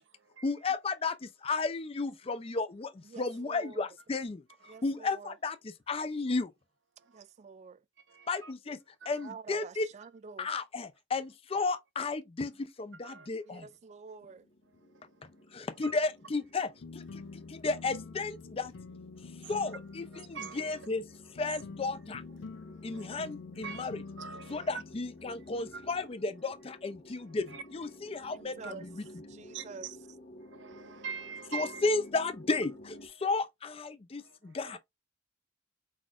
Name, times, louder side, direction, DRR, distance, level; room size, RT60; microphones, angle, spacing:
voice 1, 0.4-6.5 8.3-8.8 9.1-9.9 10.4-13.7 15.5-17.2 17.5-18.7 19.5-21.0 21.3-22.2 22.8-24.0 24.5-29.1 31.5-34.8, left 3 dB, 30° left, 0.4 m, -33 dB
voice 2, 3.1-3.8 4.7-5.4 7.1-7.8 9.2-10.5 13.5-14.5 23.0-23.1 28.3-28.9 29.3-29.9, right 5 dB, 40° right, 0.3 m, -48 dB
voice 3, 8.1-8.5 9.0-9.1 13.0-13.3 15.8-15.9 20.1-20.8 22.9-23.1 23.6-23.9 24.2-24.7 25.7-25.8 27.5-27.6 28.6-28.7 29.5-30.0 30.5-31.8 34.7-34.8, right 6 dB, 75° right, 0.6 m, -43 dB
sound 1, 14.2-33.1, left 1 dB, 50° left, 1.1 m, -53 dB
sound 2, 16.8-26.1, left 4 dB, 85° left, 0.5 m, -47 dB
4.7 x 4.2 x 2.4 m
head